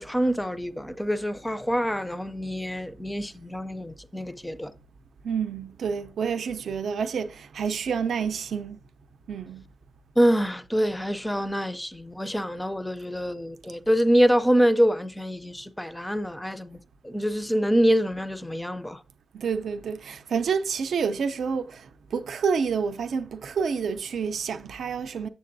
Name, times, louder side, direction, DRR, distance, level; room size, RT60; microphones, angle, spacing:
voice 1, 0.0-4.7 10.2-19.0, equal, 5° left, 0.4 m, -25 dB
voice 2, 5.2-8.8 9.3-9.6 19.3-25.3, right 6 dB, 85° right, 0.5 m, -28 dB
7.5 x 7.3 x 2.6 m
wide cardioid pair, 180°, 0 cm